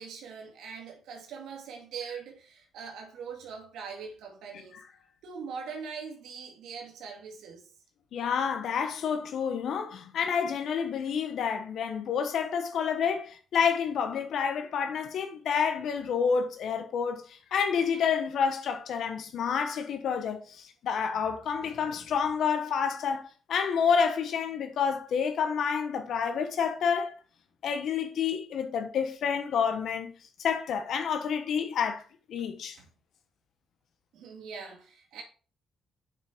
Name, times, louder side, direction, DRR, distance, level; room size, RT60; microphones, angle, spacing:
voice 1, 0.0-4.8 5.2-7.7 32.8-32.9 34.1-35.2, right 6 dB, 85° right, 2.3 m, -42 dB
voice 2, 8.1-17.2 17.5-23.2 23.5-27.2 27.6-30.1 30.4-32.0 32.3-32.7, left 6 dB, 70° left, 1.3 m, -29 dB
7.4 x 5.9 x 5.1 m
cardioid pair, 90°, 0 cm